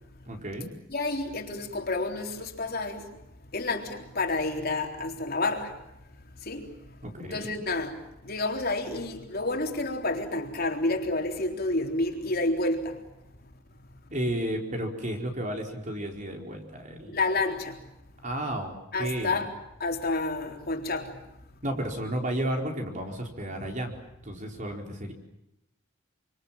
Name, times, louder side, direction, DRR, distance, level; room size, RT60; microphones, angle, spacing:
voice 1, 0.3-0.7 7.0-7.5 14.1-17.2 18.2-19.4 21.6-23.9 24.2-25.1, right 1 dB, 40° right, 4.5 m, -32 dB
voice 2, 0.9-3.0 3.5-5.7 6.5-6.7 7.3-8.0 8.2-13.0 17.1-17.8 18.9-19.5 19.8-21.2, left 2 dB, 50° left, 3.7 m, -29 dB
26.5 x 25.5 x 7.6 m
head